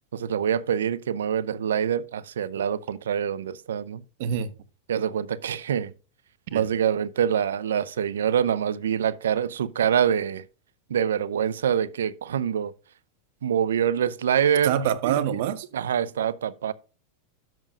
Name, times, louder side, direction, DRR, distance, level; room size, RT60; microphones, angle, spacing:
voice 1, 0.1-4.0 4.9-5.9 6.5-10.4 10.9-12.7 13.4-14.7 15.1-15.2 15.7-16.7, right 8 dB, 85° right, 0.6 m, -25 dB
voice 2, 4.2-4.5 6.5-6.7 14.6-15.7, right 9 dB, 65° right, 1.1 m, -26 dB
12.0 x 7.6 x 2.4 m
hypercardioid pair, 105°, 0 cm